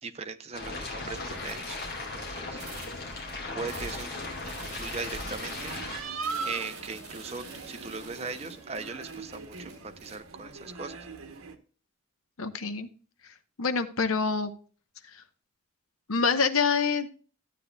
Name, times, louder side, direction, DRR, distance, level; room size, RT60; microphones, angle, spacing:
voice 1, 0.0-1.9 2.1-2.6 3.6-4.1 4.6-5.7 6.4-11.0, right 4 dB, 30° right, 8 dB, 0.6 m, -39 dB
sound 1, 0.5-6.0, left 3 dB, 45° left, 2.2 m, -37 dB
sound 2, 1.5-2.2 2.5-3.3 3.7-10.2, right 3 dB, 50° right, 3.5 m, -47 dB
sound 3, 4.1-11.6, right 4 dB, 80° right, 1.0 m, -41 dB
voice 2, 12.4-12.9 13.6-14.5 15.1-15.2 16.1-17.1, left 5 dB, 80° left, 10 dB, 0.9 m, -26 dB
13.5 x 8.2 x 2.2 m, 0.39 s
head